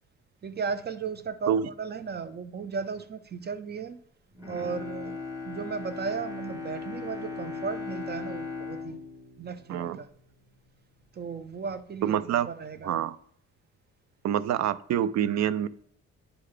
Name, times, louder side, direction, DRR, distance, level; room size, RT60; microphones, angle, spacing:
voice 1, 0.4-4.0 4.5-5.2 5.4-9.0 9.4-10.1 11.1-13.0, right 5 dB, 35° right, 12 dB, 0.8 m, -35 dB
Bowed string instrument, 4.3-10.6 11.0-11.1, left 4 dB, 10° right, 1.3 m, -38 dB
voice 2, 12.0-12.5 12.8-13.2 14.2-15.7, right 10 dB, 65° right, 17 dB, 0.5 m, -26 dB
9.8 x 3.8 x 3.3 m, 0.66 s
cardioid pair, 90°, 30 cm